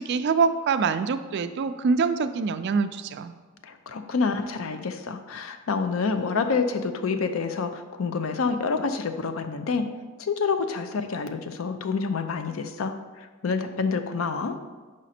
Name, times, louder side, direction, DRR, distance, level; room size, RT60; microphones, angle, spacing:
voice 1, 0.0-3.3, right 5 dB, 55° right, 11 dB, 0.3 m, -25 dB
voice 2, 3.6-9.9 10.2-14.6, left 4 dB, 80° left, 9 dB, 0.5 m, -28 dB
5.0 x 5.0 x 4.2 m, 1.3 s
head